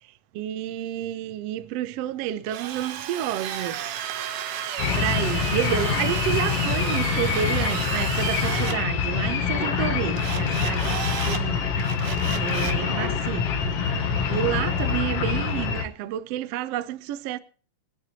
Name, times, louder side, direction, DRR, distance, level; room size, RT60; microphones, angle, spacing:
voice 1, 0.0-4.2 4.9-12.0 12.4-13.5 14.3-17.4, right 11 dB, 70° right, 1.5 m, -30 dB
Drill, 2.4-8.8 10.2-11.4 11.8-12.8, right 10 dB, 90° right, 2.6 m, -32 dB
sound 1, 4.8-15.9, left 6 dB, 60° left, 2.0 m, -25 dB
24.5 x 9.6 x 2.9 m
omnidirectional pair, 3.6 m